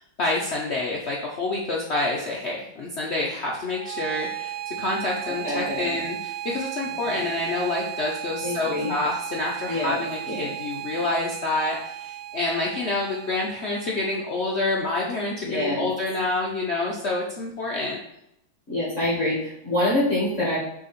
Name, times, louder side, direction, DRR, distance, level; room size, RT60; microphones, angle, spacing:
voice 1, 0.0-18.0, left 2 dB, 90° left, -3 dB, 0.5 m, -28 dB
sound 1, 3.7-14.7, right 14 dB, 90° right, 1.5 m, -36 dB
voice 2, 5.4-6.0 7.1-7.3 8.4-8.9 9.7-10.0 10.3-10.5 15.4-15.9 18.7-20.6, left 1 dB, 40° left, -7 dB, 1.8 m, -26 dB
6.4 x 3.5 x 4.2 m, 0.82 s
omnidirectional pair, 2.2 m